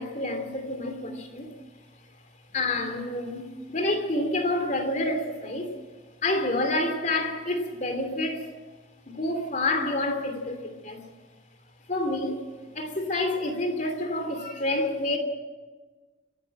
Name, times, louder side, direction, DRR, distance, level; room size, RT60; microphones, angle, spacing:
voice 1, 0.0-1.5 2.5-5.7 6.2-8.5 9.1-11.0 11.9-12.5 12.7-15.2, left 2 dB, 40° left, 2.8 m, -28 dB
26.5 x 11.5 x 8.8 m
head